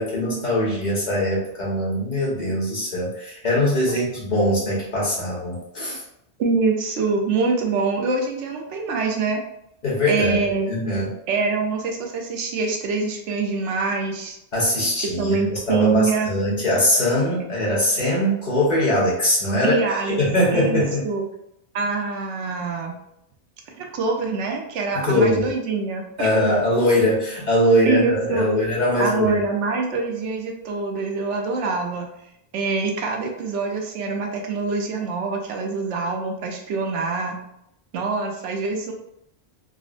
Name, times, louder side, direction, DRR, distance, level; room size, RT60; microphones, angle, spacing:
voice 1, 0.0-6.0 9.8-10.4 10.7-11.1 14.5-19.8 20.1-21.0 24.9-25.5 26.2-29.3, left 1 dB, 40° left, -6 dB, 1.2 m, -21 dB
voice 2, 6.4-9.4 10.1-10.7 11.3-14.4 15.0-16.3 19.6-20.2 20.5-21.2 21.7-23.0 23.7-26.3 27.9-28.5 29.0-32.1 32.5-37.4 37.9-38.9, right 4 dB, 85° right, 2 dB, 1.0 m, -25 dB
3.7 x 2.0 x 2.5 m, 0.77 s
omnidirectional pair, 1.2 m